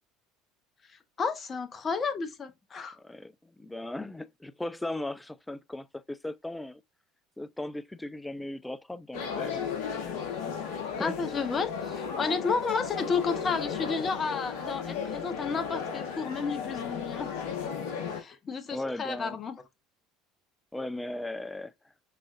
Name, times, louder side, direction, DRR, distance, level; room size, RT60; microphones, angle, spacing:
voice 1, 0.9-3.0 11.0-17.3 18.2-19.6, left 5 dB, 35° left, 0.9 m, -32 dB
voice 2, 3.0-3.3 3.6-6.8 7.4-9.6 11.0-11.1 18.7-19.4 20.7-21.7, left 1 dB, 10° left, 0.3 m, -37 dB
sound 1, 9.1-18.2, left 6 dB, 60° left, 1.3 m, -35 dB
4.8 x 3.7 x 2.5 m
figure-of-eight pair, 65°, 0 cm